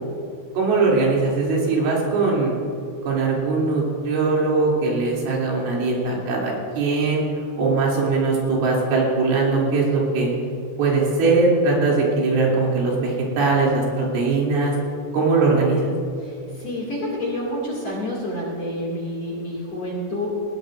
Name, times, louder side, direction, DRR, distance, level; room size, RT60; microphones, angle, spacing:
voice 1, 0.6-2.5 3.1-7.2 7.6-10.3 10.8-14.8 15.1-15.9, right 3 dB, 85° right, -4 dB, 5.5 m, -20 dB
voice 2, 16.2-20.3, left 1 dB, 40° left, -4 dB, 2.7 m, -29 dB
20.0 x 16.5 x 2.6 m, 2.6 s
omnidirectional pair, 5.5 m